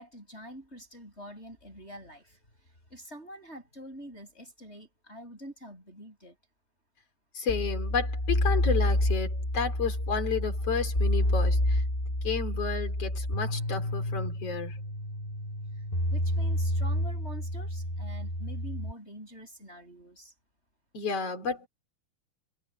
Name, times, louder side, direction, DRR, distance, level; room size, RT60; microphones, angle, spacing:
voice 1, 0.0-6.4 15.8-15.9 16.1-20.3, equal, 15° left, 8.0 m, -46 dB
voice 2, 7.3-11.8 12.2-14.8 20.9-21.7, left 5 dB, 40° left, 4.5 m, -32 dB
sound 1, 7.5-18.9, left 1 dB, 60° left, 0.4 m, -29 dB
omnidirectional pair, 4.7 m